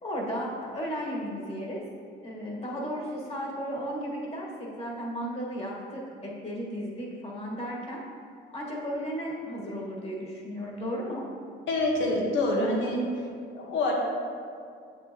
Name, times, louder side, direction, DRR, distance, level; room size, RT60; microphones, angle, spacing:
voice 1, 0.0-1.8 2.2-8.0 8.5-11.2, equal, 30° left, -3 dB, 1.6 m, -34 dB
voice 2, 11.7-13.0 13.5-13.9, left 2 dB, 75° left, -1 dB, 1.3 m, -26 dB
7.3 x 6.5 x 3.0 m, 2.3 s
cardioid pair, 90°, 20 cm